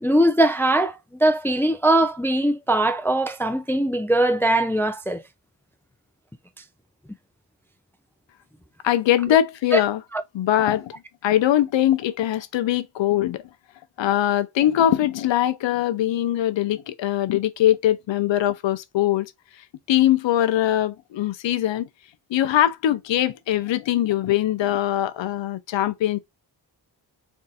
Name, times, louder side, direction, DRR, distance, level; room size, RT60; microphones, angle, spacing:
voice 1, 0.0-5.2 9.7-9.8 10.1-10.2, right 1 dB, 5° left, 0.4 m, -21 dB
voice 2, 8.8-10.0 10.3-10.9 11.2-13.4 14.0-19.3 19.9-21.9 22.3-26.2, left 12 dB, 80° left, 0.6 m, -22 dB
3.5 x 2.6 x 4.1 m
cardioid pair, 80°, 44 cm